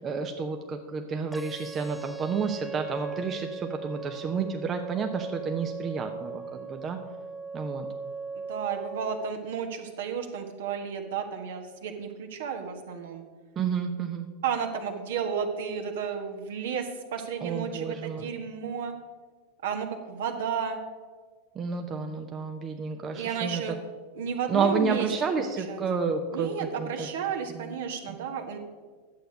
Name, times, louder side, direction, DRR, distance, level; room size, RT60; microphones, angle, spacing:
voice 1, 0.0-7.0 7.5-7.9 13.6-14.3 17.4-18.3 21.5-23.6 24.5-26.9 27.5-27.8 28.1-28.2, right 5 dB, 25° right, 5 dB, 0.7 m, -30 dB
sound 1, 1.3-9.3, right 4 dB, ahead, 0.3 m, -39 dB
voice 2, 8.5-13.2 14.4-18.9 19.6-20.8 23.1-23.8 24.1-25.1 25.4-25.8 26.3-28.6, right 7 dB, 55° right, 4 dB, 1.3 m, -32 dB
11.5 x 7.9 x 5.2 m, 1.5 s
figure-of-eight pair, 90°, 0 cm